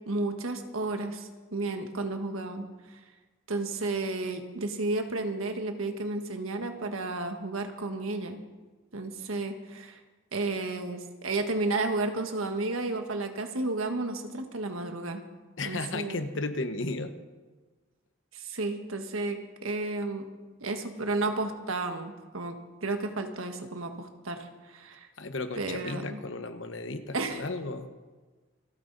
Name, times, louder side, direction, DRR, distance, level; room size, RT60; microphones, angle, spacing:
voice 1, 0.1-2.7 3.5-8.4 8.9-10.0 10.3-15.2 15.6-16.2 18.3-20.2 20.6-22.6 22.8-24.4 24.7-25.1 25.6-26.2 27.1-27.4, right 2 dB, 85° right, 6 dB, 1.5 m, -32 dB
voice 2, 15.6-17.1 25.2-27.9, left 2 dB, 65° left, 9 dB, 1.1 m, -34 dB
27.5 x 9.3 x 4.0 m, 1.3 s
head